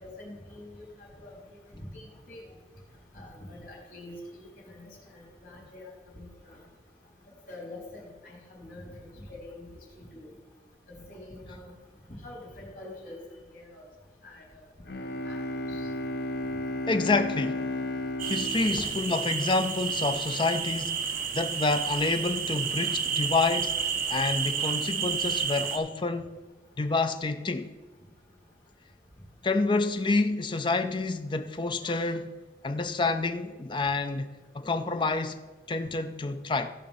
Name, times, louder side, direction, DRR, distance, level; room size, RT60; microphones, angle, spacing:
voice 1, 0.0-1.3 1.7-2.4 3.1-5.9 6.2-6.6 7.5-9.6 10.0-10.3 11.1-11.7 12.2-13.2 13.5-13.8 14.2-14.6 15.2-15.4 15.7-15.9, left 1 dB, 50° left, 4.0 m, -45 dB
Bowed string instrument, 14.9-19.8, left 1 dB, 65° left, 0.7 m, -34 dB
voice 2, 16.9-17.6 18.2-23.8 24.1-26.3 26.8-27.7 29.4-32.3 32.6-34.3 34.5-36.7, left 3 dB, 25° left, 0.5 m, -28 dB
sound 1, 18.2-25.8, right 7 dB, 55° right, 0.9 m, -30 dB
14.5 x 5.1 x 5.5 m
head